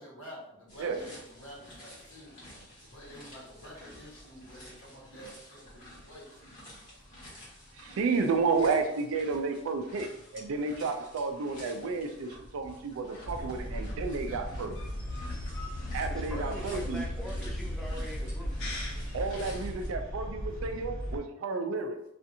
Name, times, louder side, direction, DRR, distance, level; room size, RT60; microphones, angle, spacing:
voice 1, 0.0-2.4 2.9-6.2 14.2-14.4 19.0-19.1, equal, 65° left, -5 dB, 1.1 m, -49 dB
sound 1, 0.7-19.9, left 1 dB, 40° left, 1.2 m, -50 dB
voice 2, 7.8-14.7 15.9-17.0 19.1-22.0, right 4 dB, 70° right, 6 dB, 0.4 m, -31 dB
sound 2, 13.2-21.2, equal, 80° left, 0.8 m, -36 dB
voice 3, 16.1-18.5, equal, ahead, -3 dB, 0.4 m, -43 dB
2.7 x 2.4 x 2.5 m, 0.79 s
head